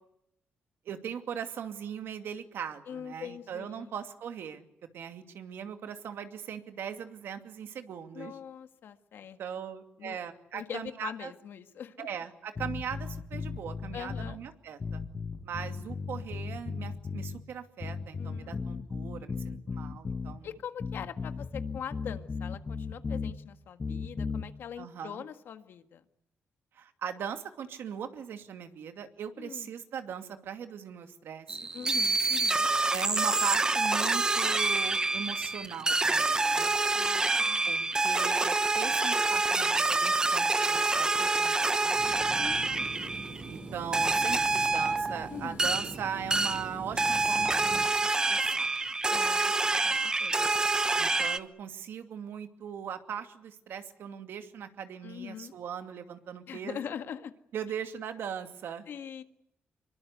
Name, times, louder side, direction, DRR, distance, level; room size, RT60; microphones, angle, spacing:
voice 1, 0.9-4.7 4.9-8.3 9.4-11.3 12.0-15.0 15.4-20.5 24.8-25.2 26.7-31.7 32.9-36.8 37.7-42.1 43.4-48.7 51.0-56.8 57.5-58.9, right 8 dB, 65° right, 7 dB, 2.5 m, -39 dB
voice 2, 2.9-3.9 8.1-9.6 10.0-10.2 10.5-12.1 13.9-14.4 18.2-18.8 20.4-26.0 29.4-29.7 31.7-32.7 36.9-37.7 42.4-43.0 45.3-45.7 49.1-50.5 55.0-55.5 56.5-57.3 58.9-59.2, left 8 dB, 60° left, 9 dB, 1.8 m, -42 dB
sound 1, 12.6-14.4 14.8-17.4 17.8-20.4 20.8-23.4 23.8-24.5, left 5 dB, 25° left, 1.4 m, -36 dB
sound 2, 31.5-43.6 43.9-46.0 46.3-46.7 47.0-51.4, right 3 dB, 20° right, 1.0 m, -27 dB
sound 3, 42.0-47.9, right 3 dB, 40° right, 4.4 m, -43 dB
25.0 x 23.0 x 8.2 m, 0.77 s
cardioid pair, 140°, 4 cm